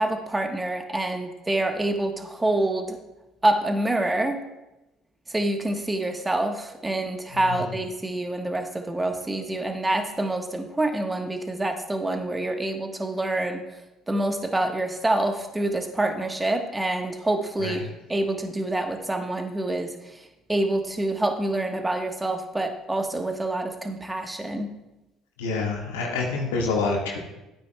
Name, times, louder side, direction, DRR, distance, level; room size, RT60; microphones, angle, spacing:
voice 1, 0.0-3.0 3.4-4.4 5.3-13.6 14.1-20.2 20.5-24.7, right 1 dB, 15° right, 5 dB, 1.3 m, -26 dB
voice 2, 25.4-27.2, left 3 dB, 85° left, -1 dB, 1.6 m, -27 dB
11.5 x 9.1 x 2.3 m, 0.98 s
hypercardioid pair, 60°, 0 cm